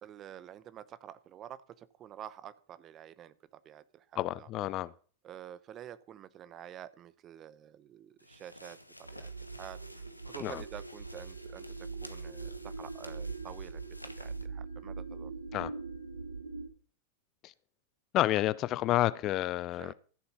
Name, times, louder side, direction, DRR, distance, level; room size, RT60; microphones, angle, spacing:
voice 1, 0.0-4.5 5.2-9.3 9.6-11.7 12.0-13.8 14.2-15.3 19.7-19.9, right 10 dB, 30° right, 0.9 m, -49 dB
voice 2, 4.2-4.9 10.4-10.6 15.5-15.7 17.4-17.5 18.1-19.9, left 15 dB, 35° left, 0.5 m, -30 dB
sound 1, 8.2-14.5, left 1 dB, 85° left, 1.0 m, -52 dB
sound 2, 9.0-16.7, right 4 dB, 80° right, 1.6 m, -42 dB
14.0 x 7.0 x 6.9 m
figure-of-eight pair, 90°, 0 cm